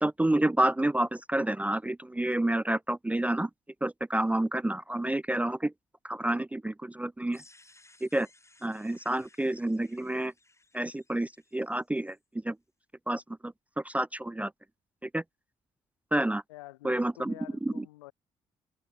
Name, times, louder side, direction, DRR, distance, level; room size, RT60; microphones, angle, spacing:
voice 1, 0.0-3.5 3.8-5.7 6.0-7.4 8.0-8.3 8.6-10.3 10.7-12.2 12.4-12.6 13.1-14.5 15.0-15.2 16.1-16.4 16.8-17.3 17.6-17.8, right 1 dB, 10° right, 0.4 m, -29 dB
sound 1, 7.3-12.2, left 2 dB, 20° left, 6.1 m, -61 dB
voice 2, 16.5-18.1, left 19 dB, 85° left, 4.0 m, -48 dB
open air
hypercardioid pair, 45°, 15 cm